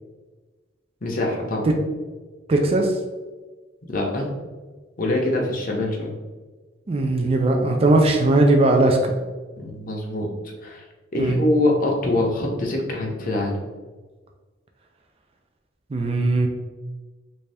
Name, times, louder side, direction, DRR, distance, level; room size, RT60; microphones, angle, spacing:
voice 1, 1.0-1.7 3.9-4.3 5.0-6.1 9.6-10.3 10.6-10.8 11.1-13.6, left 1 dB, 45° left, -1 dB, 0.6 m, -24 dB
voice 2, 2.5-3.0 6.9-9.1 11.2-11.4 15.9-16.5, right 2 dB, 30° right, 2 dB, 0.3 m, -19 dB
3.3 x 2.6 x 3.3 m, 1.3 s
head